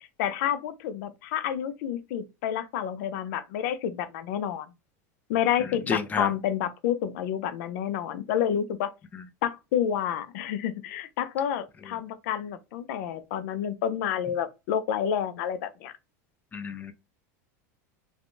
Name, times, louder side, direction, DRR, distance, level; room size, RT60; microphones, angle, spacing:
voice 1, 0.0-4.7 5.3-8.9 9.4-15.9, left 9 dB, 70° left, 0.5 m, -29 dB
voice 2, 5.9-6.3 9.1-9.2 16.5-16.9, left 5 dB, 20° left, 0.5 m, -30 dB
3.4 x 2.2 x 2.5 m
supercardioid pair, 130°, 9 cm